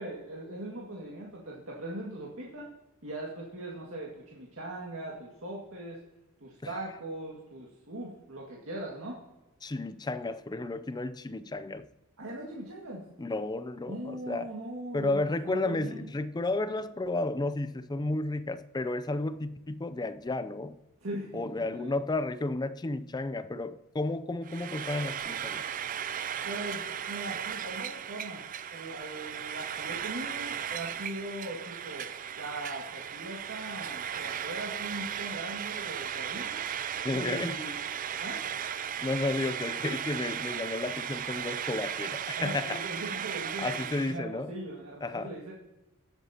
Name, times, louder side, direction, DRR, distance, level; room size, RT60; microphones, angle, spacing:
voice 1, 0.0-2.7 3.0-6.0 6.4-9.2 12.2-13.1 13.9-16.1 21.0-21.9 26.4-36.6 37.1-37.8 38.2-38.4 42.4-45.5, right 1 dB, 70° right, 2.0 m, -40 dB
voice 2, 9.6-11.9 13.2-14.5 14.9-20.8 21.3-25.6 37.0-37.6 39.0-43.2 43.6-44.5 45.0-45.3, left 2 dB, 20° left, 0.4 m, -32 dB
Frying (food), 24.4-44.2, right 8 dB, 40° right, 0.4 m, -36 dB
20.0 x 8.0 x 2.9 m
head